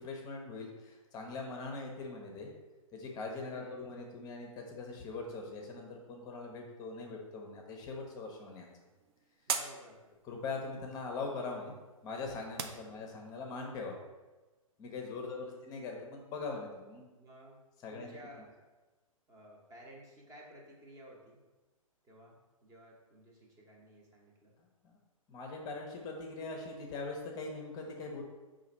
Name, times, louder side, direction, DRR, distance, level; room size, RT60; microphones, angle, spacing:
voice 1, 0.0-2.5 2.9-8.7 10.2-11.7 12.0-14.0 14.8-17.0 17.8-18.1 24.8-25.0 25.3-28.2, left 3 dB, 20° left, 1 dB, 0.7 m, -41 dB
voice 2, 3.5-3.9 9.5-10.1 12.7-13.0 15.0-15.7 17.1-17.6 17.9-18.6 19.3-21.4 22.0-24.5, right 1 dB, 20° right, -2 dB, 0.9 m, -55 dB
sound 1, 8.0-13.5, right 6 dB, 45° right, 0.4 m, -44 dB
4.9 x 2.6 x 4.1 m, 1.2 s
figure-of-eight pair, 125°, 18 cm